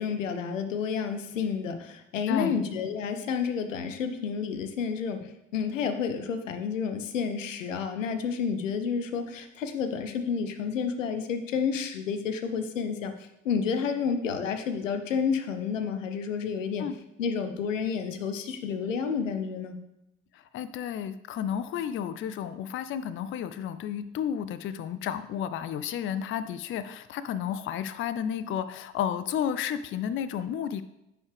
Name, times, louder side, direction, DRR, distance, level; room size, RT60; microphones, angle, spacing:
voice 1, 0.0-16.9 17.2-19.8, left 6 dB, 80° left, 8 dB, 0.7 m, -30 dB
voice 2, 2.3-2.6 16.8-17.0 20.3-30.8, left 9 dB, 35° left, 13 dB, 0.4 m, -32 dB
9.4 x 4.7 x 3.3 m, 0.88 s
figure-of-eight pair, 50°, 38 cm